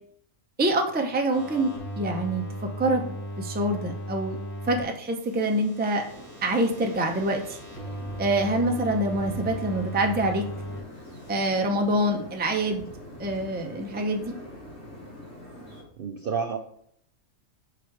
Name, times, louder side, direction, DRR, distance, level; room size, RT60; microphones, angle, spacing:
voice 1, 0.6-4.4 4.7-6.0 6.4-7.6 8.2-10.4 11.3-12.9 13.2-14.3, right 1 dB, 10° right, 3 dB, 0.4 m, -26 dB
sound 1, 1.3-4.8 5.1-10.8 11.1-11.6, right 1 dB, 20° left, 2.6 m, -37 dB
sound 2, 6.0-15.8, left 1 dB, 65° left, 3.2 m, -43 dB
voice 2, 16.0-16.6, right 6 dB, 60° right, 5 dB, 0.6 m, -29 dB
5.8 x 5.0 x 4.7 m, 0.67 s
omnidirectional pair, 1.4 m